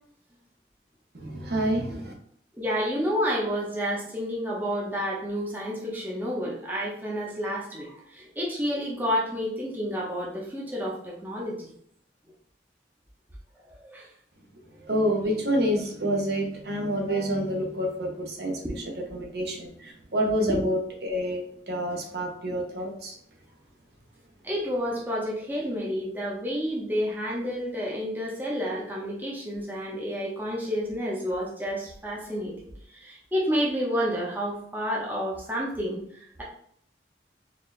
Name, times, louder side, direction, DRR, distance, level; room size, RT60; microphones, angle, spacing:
voice 1, 1.1-2.1 14.9-18.6 19.1-21.4 21.7-23.1, equal, 65° right, 1 dB, 0.9 m, -28 dB
voice 2, 2.5-11.7 13.8-14.1 14.8-14.9 18.6-18.7 20.5-20.6 24.4-32.5 32.9-36.4, equal, 10° right, -4 dB, 0.8 m, -30 dB
4.3 x 2.7 x 3.2 m, 0.67 s
head